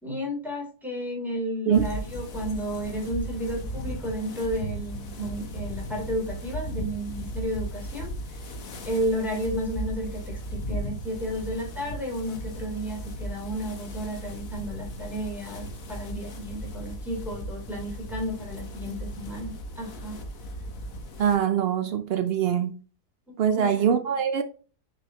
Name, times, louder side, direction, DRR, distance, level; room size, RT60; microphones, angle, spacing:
voice 1, 0.0-8.4 8.9-20.2 23.3-23.9, equal, ahead, 2.9 m, -32 dB
sound 1, 1.7-21.4, equal, 60° left, 1.5 m, -36 dB
voice 2, 21.2-22.7 23.4-24.4, right 8 dB, 85° right, 0.5 m, -23 dB
6.5 x 5.3 x 2.8 m
omnidirectional pair, 1.7 m